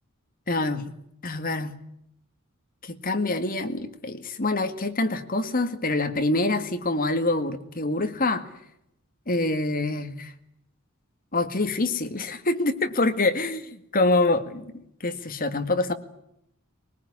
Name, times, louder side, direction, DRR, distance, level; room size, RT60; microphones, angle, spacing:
voice 1, 0.5-0.9 1.2-1.7 2.8-8.4 9.3-10.3 11.3-13.6 13.9-14.7 15.0-15.9, left 2 dB, 40° left, 8 dB, 2.0 m, -25 dB
22.0 x 20.0 x 9.8 m, 0.77 s
head